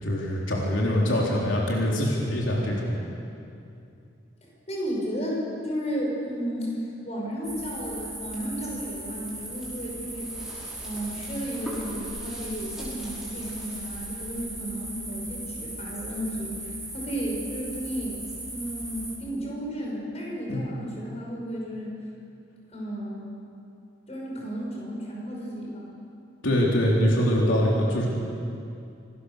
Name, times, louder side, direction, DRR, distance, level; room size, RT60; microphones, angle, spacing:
voice 1, 0.0-2.9 20.5-20.6 26.4-28.1, equal, 80° left, -3 dB, 3.8 m, -23 dB
voice 2, 4.4-10.3 10.8-18.2 18.5-22.0 22.7-23.3 24.1-25.9, equal, 35° left, -2 dB, 5.9 m, -33 dB
sound 1, 7.4-19.2, right 1 dB, ahead, 5.4 m, -37 dB
26.5 x 20.0 x 6.8 m, 2.6 s
head